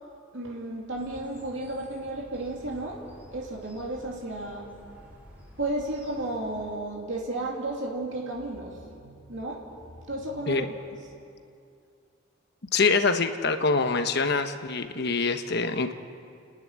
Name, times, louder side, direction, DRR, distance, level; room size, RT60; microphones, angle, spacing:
voice 1, 0.3-4.7 5.6-11.0, right 2 dB, 65° right, -2 dB, 2.8 m, -33 dB
sound 1, 0.9-6.7, equal, 10° right, 3.7 m, -51 dB
voice 2, 12.7-15.9, left 4 dB, 55° left, 8 dB, 1.1 m, -25 dB
30.0 x 10.0 x 9.9 m, 2.4 s
head